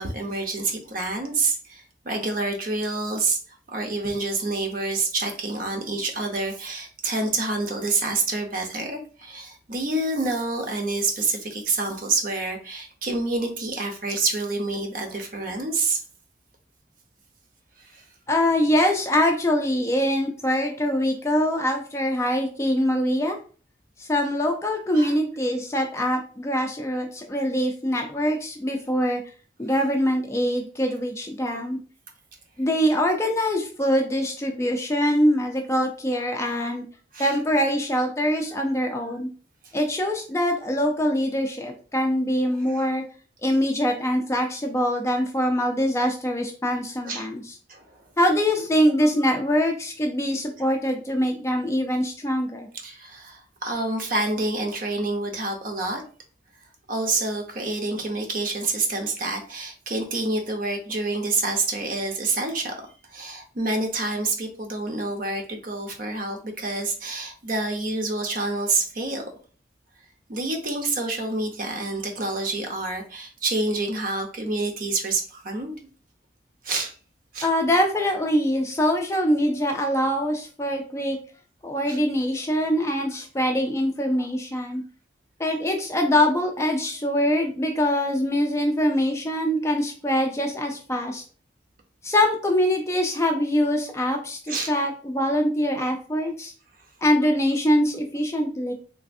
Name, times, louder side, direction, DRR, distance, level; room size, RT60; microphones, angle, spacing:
voice 1, 0.0-3.4 3.7-16.0 17.8-18.0 24.9-25.2 37.1-37.3 42.7-42.8 47.0-47.3 47.7-47.9 52.8-56.0 56.9-62.7 63.1-69.2 70.3-75.7 76.6-76.9 77.3-77.5 81.9-82.0 94.5-94.7, right 3 dB, 45° right, 3 dB, 0.6 m, -27 dB
voice 2, 18.3-23.4 24.0-29.2 29.6-31.8 32.6-36.8 37.2-39.3 39.7-43.0 43.4-47.4 48.2-52.7 77.4-81.2 81.6-84.8 85.4-91.2 92.0-96.5 97.0-98.7, equal, 15° left, 2 dB, 0.3 m, -23 dB
3.3 x 2.4 x 2.5 m, 0.39 s
head